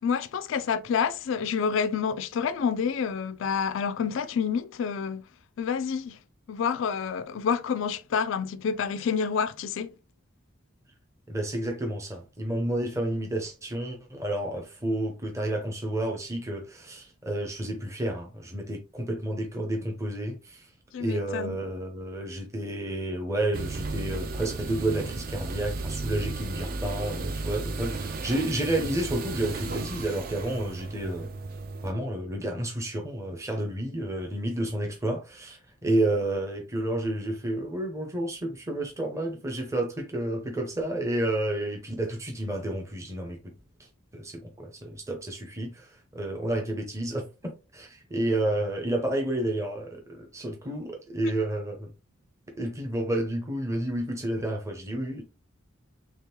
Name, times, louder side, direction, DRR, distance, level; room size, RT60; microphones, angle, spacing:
voice 1, 0.0-5.3 5.6-6.2 6.5-9.9 20.9-21.6, left 6 dB, 65° left, 0.3 m, -28 dB
voice 2, 11.3-20.7 21.0-31.3 31.8-43.4 44.1-51.9 52.6-55.2, right 1 dB, 15° right, 0.7 m, -30 dB
sound 1, 23.5-31.9, right 3 dB, 40° right, 0.4 m, -34 dB
3.6 x 3.4 x 2.9 m
head